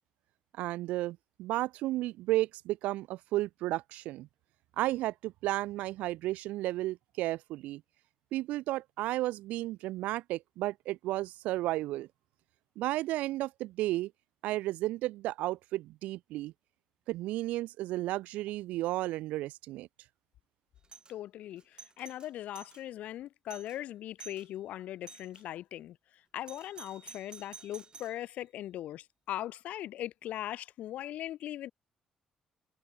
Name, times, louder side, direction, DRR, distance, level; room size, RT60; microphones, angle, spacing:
voice 1, 0.6-4.3 4.8-7.8 8.3-12.1 12.8-14.1 14.4-16.5 17.1-19.9, right 16 dB, 80° right, 0.5 m, -33 dB
Doorbell, 20.8-21.1 21.6-22.8 23.2-23.3 23.5-23.8 24.2-24.5 25.1-25.4 26.5-28.2, right 5 dB, 35° right, 2.9 m, -51 dB
voice 2, 21.1-26.0 26.3-31.7, left 13 dB, 75° left, 4.6 m, -40 dB
supercardioid pair, 65°, 2 cm